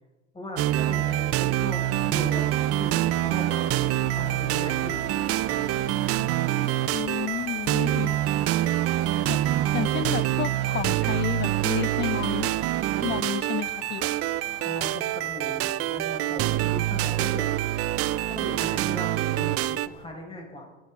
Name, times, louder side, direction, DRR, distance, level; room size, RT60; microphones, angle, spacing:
voice 1, 0.3-5.0 14.5-17.5 18.2-20.6, left 1 dB, 15° left, 0 dB, 5.4 m, -38 dB
sound 1, 0.6-19.9, right 14 dB, 40° right, 0.6 m, -26 dB
sound 2, 1.1-20.0, left 2 dB, 85° left, 3.9 m, -46 dB
sound 3, 2.0-10.0, left 4 dB, 60° left, 4.2 m, -48 dB
voice 2, 6.9-8.2 9.2-9.4 9.7-12.6 13.0-14.1, left 12 dB, 30° left, 22 dB, 0.5 m, -31 dB
23.5 x 12.0 x 3.7 m, 1.2 s
hypercardioid pair, 95°, 35 cm